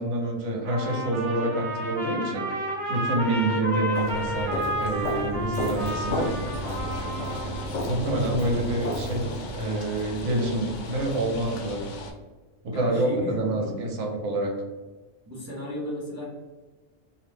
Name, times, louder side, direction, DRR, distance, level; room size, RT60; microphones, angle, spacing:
voice 1, 0.0-2.5 2.9-6.4 7.9-11.8 12.6-14.5, right 1 dB, 75° right, 1 dB, 1.0 m, -27 dB
Trumpet, 0.6-7.8, right 1 dB, 50° right, 0.7 m, -31 dB
Walk footsteps, 3.9-9.5, equal, 90° left, 1.2 m, -32 dB
sound 1, 5.8-12.1, left 1 dB, 70° left, 0.4 m, -38 dB
voice 2, 12.7-13.8 15.2-16.2, left 1 dB, 20° right, -7 dB, 0.5 m, -34 dB
2.6 x 2.1 x 3.2 m, 1.3 s
omnidirectional pair, 1.3 m